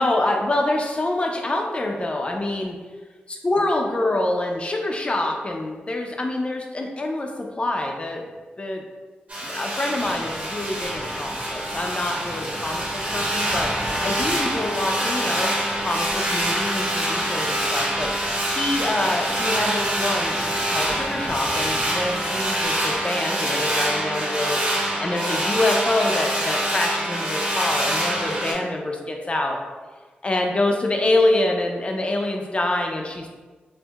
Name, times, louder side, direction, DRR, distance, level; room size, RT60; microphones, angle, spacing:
voice 1, 0.0-2.8 3.4-8.2 8.6-8.8 9.4-15.5 15.8-29.6 30.2-33.3, left 2 dB, 30° left, 2 dB, 0.5 m, -26 dB
sound 1, 9.3-28.5, right 1 dB, 45° right, 1.1 m, -25 dB
sound 2, 10.0-23.0, right 1 dB, 15° right, 0.5 m, -39 dB
4.4 x 2.0 x 2.3 m, 1.4 s
cardioid pair, 75°, 4 cm